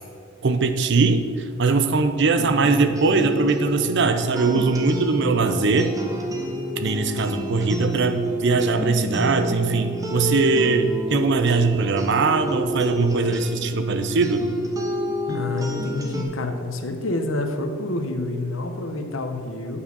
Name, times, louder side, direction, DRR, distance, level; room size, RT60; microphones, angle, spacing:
voice 1, 0.4-1.3 1.6-5.9 6.8-14.5, right 4 dB, 60° right, 9 dB, 0.6 m, -21 dB
sound 1, 2.4-16.2, equal, 15° right, 0.9 m, -29 dB
voice 2, 15.3-19.8, left 2 dB, 75° left, 6 dB, 0.9 m, -28 dB
8.5 x 5.0 x 6.9 m, 2.4 s
head